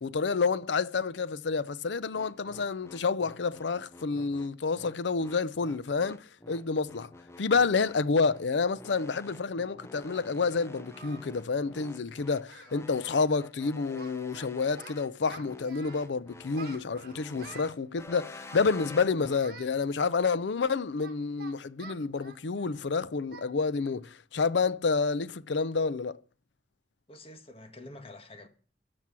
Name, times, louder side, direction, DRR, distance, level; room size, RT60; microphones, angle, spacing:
voice 1, 0.0-7.1 7.4-26.2, left 4 dB, 80° left, 0.6 m, -29 dB
sound 1, 2.1-19.4, left 2 dB, 15° left, 0.6 m, -49 dB
Singing, 9.3-9.4 10.1-11.3 11.6-11.8 12.1-12.2 12.4-12.8 13.1-13.3 13.6-14.5 14.8-16.1 16.5-17.7 18.4-19.1 19.4-19.7 20.2-22.8 23.3-23.5 23.9-24.0 24.5-24.6 25.0-25.3, right 4 dB, 55° right, 1.7 m, -50 dB
voice 2, 27.1-28.5, left 2 dB, 35° left, 1.5 m, -47 dB
12.5 x 6.0 x 6.1 m
head